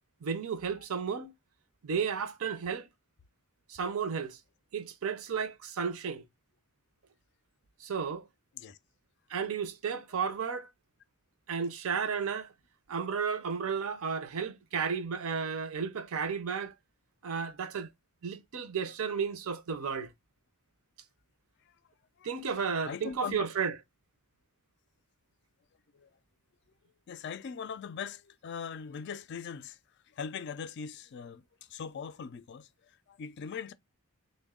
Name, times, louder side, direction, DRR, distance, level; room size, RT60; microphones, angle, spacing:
voice 1, 0.2-1.3 1.8-2.9 3.7-4.4 4.7-6.2 7.8-8.3 9.3-10.7 11.5-12.5 12.9-16.7 17.2-17.9 18.2-20.1 22.2-23.7, right 6 dB, 75° right, 0.5 m, -33 dB
voice 2, 22.2-23.5 25.9-26.1 27.1-33.7, left 6 dB, 50° left, 0.3 m, -41 dB
3.5 x 2.2 x 3.5 m
head